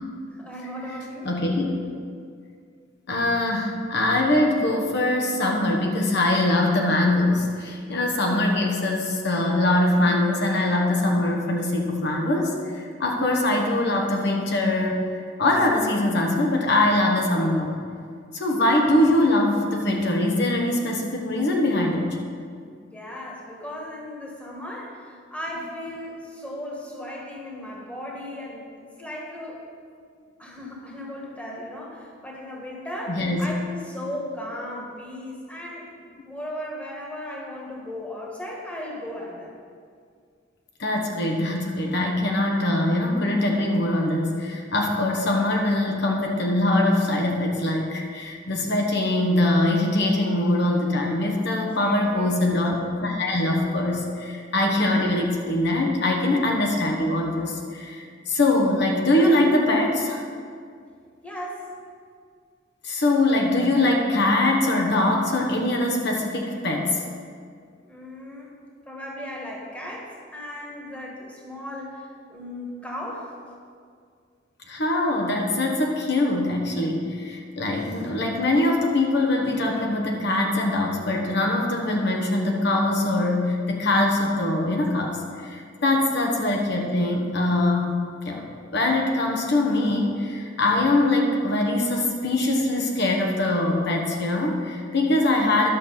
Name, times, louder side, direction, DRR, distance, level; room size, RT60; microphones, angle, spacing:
voice 1, 0.3-1.3 1.7-1.8 22.9-29.6 30.4-35.9 36.2-39.5 51.5-52.3 61.2-61.7 67.8-68.5 68.9-73.3 85.8-86.0, left 1 dB, 5° left, -3 dB, 1.7 m, -36 dB
voice 2, 1.2-1.7 3.1-15.0 15.4-17.7 18.3-22.1 33.1-33.4 40.8-60.2 62.8-67.0 74.7-87.9 88.2-88.4 88.7-95.7, left 1 dB, 60° left, 0 dB, 1.3 m, -22 dB
11.0 x 6.7 x 5.6 m, 2.2 s
head